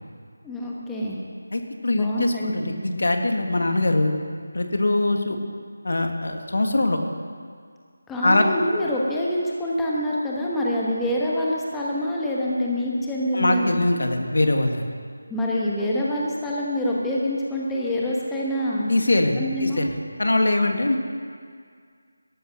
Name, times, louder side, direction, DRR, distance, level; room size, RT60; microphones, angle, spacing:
voice 1, 0.4-1.2 1.9-2.7 8.1-13.8 15.3-19.8, left 1 dB, 5° left, -5 dB, 1.2 m, -26 dB
voice 2, 1.5-4.1 4.5-5.4 5.8-7.0 8.2-8.5 13.3-14.9 18.9-19.9 20.2-21.0, left 2 dB, 70° left, 4 dB, 1.7 m, -22 dB
13.5 x 11.5 x 6.5 m, 2.1 s
figure-of-eight pair, 170°, 0 cm